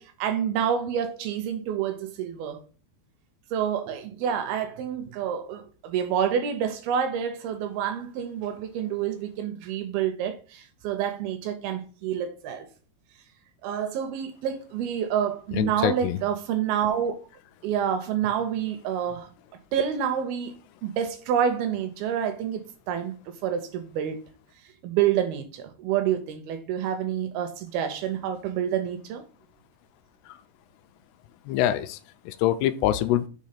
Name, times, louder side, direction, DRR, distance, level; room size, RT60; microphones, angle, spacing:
voice 1, 0.0-2.6 3.5-12.7 13.6-17.2 17.6-19.3 19.7-20.6 20.8-23.1 23.4-24.2 24.8-29.3, right 9 dB, 80° right, 2.3 m, -28 dB
voice 2, 15.5-16.2 30.3-30.4 31.5-33.3, left 12 dB, 85° left, 2.5 m, -25 dB
6.4 x 3.4 x 5.7 m
omnidirectional pair, 4.7 m